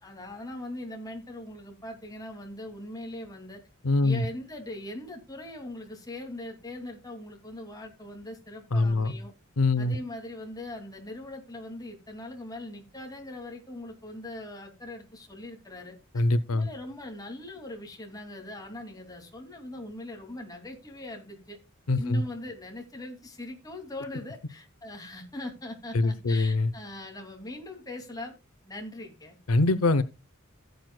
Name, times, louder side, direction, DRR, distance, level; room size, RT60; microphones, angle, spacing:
voice 1, 0.0-3.6 4.0-9.3 9.8-16.2 16.5-21.6 22.0-28.3 28.6-29.4, left 1 dB, 15° left, 2.4 m, -41 dB
voice 2, 3.8-4.3 8.7-9.1 9.6-10.0 16.1-16.7 21.9-22.2 25.9-26.7 29.5-30.0, left 2 dB, 85° left, 0.7 m, -23 dB
16.0 x 7.8 x 2.2 m
head